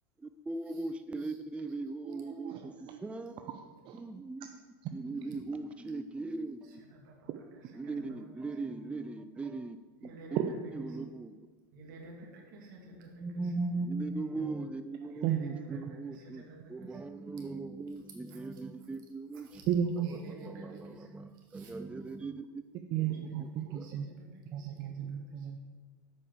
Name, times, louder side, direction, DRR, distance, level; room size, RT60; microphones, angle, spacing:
voice 1, 0.2-3.5 3.9-4.5 4.9-6.8 7.7-9.8 10.7-11.4 13.2-16.4 16.7-19.6 20.2-22.4 23.7-23.9, right 3 dB, 10° right, 10 dB, 0.4 m, -39 dB
voice 2, 2.0-3.0 3.4-4.0 4.8-4.9 15.0-15.8 19.7-20.2 22.9-24.1 24.5-25.6, right 9 dB, 50° right, 5 dB, 0.7 m, -34 dB
voice 3, 6.6-8.5 10.0-11.0 11.7-13.8 15.1-17.0 18.1-18.6 19.3-19.7 20.0-21.8 22.9-25.6, right 2 dB, 70° right, 0 dB, 2.4 m, -53 dB
8.3 x 5.5 x 6.9 m, 1.5 s
hypercardioid pair, 85°, 11 cm